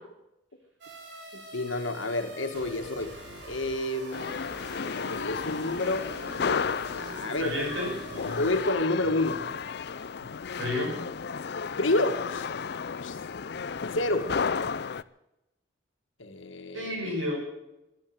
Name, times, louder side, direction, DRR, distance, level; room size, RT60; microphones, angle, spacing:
sound 1, 0.8-8.7, equal, 60° right, 5.5 m, -44 dB
voice 1, 1.3-3.2 3.5-4.4 4.9-6.1 6.5-7.5 8.3-9.5 11.8-13.2 13.9-14.3 16.2-16.9, left 2 dB, 80° left, 7 dB, 1.9 m, -30 dB
sound 2, 4.1-15.0, left 6 dB, 55° left, 0.5 m, -33 dB
voice 2, 7.0-8.6 9.9-10.3 10.6-11.0 16.7-17.4, left 1 dB, 75° right, 0 dB, 7.5 m, -33 dB
15.0 x 11.5 x 7.7 m, 0.92 s
head